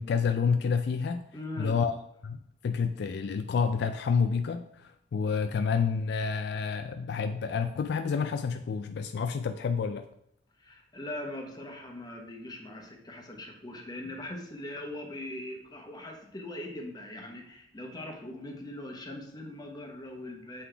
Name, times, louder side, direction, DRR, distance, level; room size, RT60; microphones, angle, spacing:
voice 1, 0.0-1.3 1.6-1.9 2.2-10.0, left 5 dB, 65° left, 7 dB, 0.3 m, -29 dB
voice 2, 1.3-1.8 10.6-20.7, left 1 dB, 20° left, 1 dB, 1.0 m, -41 dB
7.6 x 3.9 x 3.3 m, 0.73 s
head